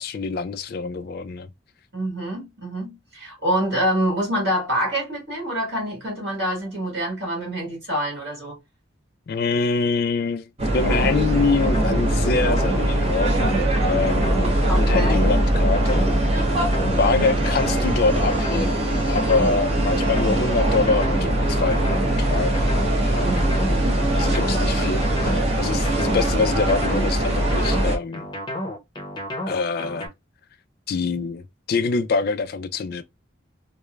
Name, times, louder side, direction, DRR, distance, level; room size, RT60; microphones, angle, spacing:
voice 1, 0.0-1.5 9.3-16.1 16.8-22.6 23.0-23.5 24.1-28.3 29.5-30.1 30.9-33.0, left 4 dB, 50° left, 0.3 m, -25 dB
voice 2, 1.9-8.6 14.7-15.1 23.2-23.3 23.8-24.0, equal, 60° right, 1.7 m, -26 dB
sound 1, 10.6-28.0, right 1 dB, 30° right, 0.7 m, -21 dB
sound 2, 10.8-30.1, equal, 25° left, 0.7 m, -31 dB
3.1 x 2.0 x 2.2 m
head